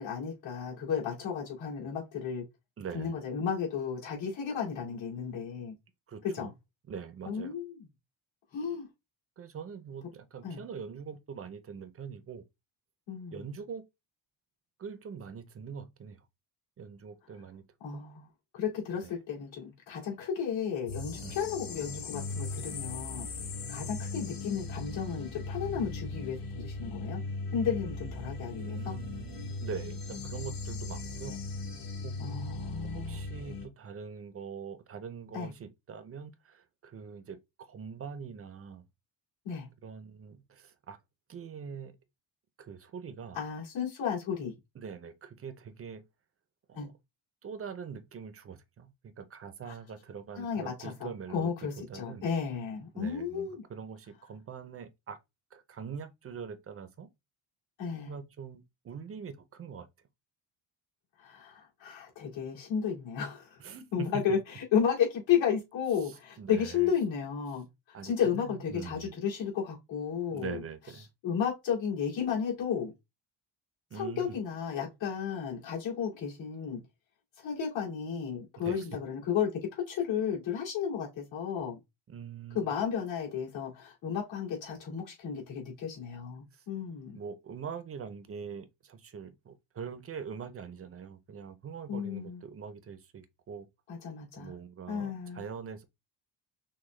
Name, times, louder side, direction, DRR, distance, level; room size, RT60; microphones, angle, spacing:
voice 1, 0.0-2.4 2.9-5.7 6.2-6.5 7.2-7.9 8.5-8.9 10.4-10.6 13.1-13.4 17.8-18.3 18.5-23.3 23.7-27.2 27.5-29.0 32.2-33.2 35.3-35.5 39.4-39.7 43.3-44.5 46.7-46.9 49.7-49.8 50.4-53.6 57.8-58.2 61.2-63.6 63.9-67.6 68.0-70.6 71.2-72.9 73.9-76.8 77.4-81.8 82.5-87.2 91.9-92.4 93.9-94.6 94.9-95.5, left 7 dB, 75° left, 2.3 m, -33 dB
voice 2, 2.8-3.2 6.1-6.5 6.9-7.5 9.4-12.4 13.3-13.8 14.8-16.2 16.8-17.6 17.9-18.0 19.0-19.1 21.2-21.4 28.6-31.4 32.0-32.1 32.9-37.4 37.7-38.8 39.8-41.0 41.3-42.0 42.6-43.4 44.8-46.0 46.7-46.9 47.4-52.3 52.9-55.2 55.5-57.1 57.9-59.9 63.6-64.1 66.0-66.9 67.9-69.1 70.3-71.1 73.9-74.4 78.6-78.9 82.1-82.6 86.5-86.6 87.1-93.7 94.4-95.8, right 6 dB, 30° right, 0.4 m, -43 dB
sound 1, 20.9-33.7, left 3 dB, 45° left, 0.9 m, -38 dB
6.1 x 2.1 x 3.2 m
cardioid pair, 170°, 46 cm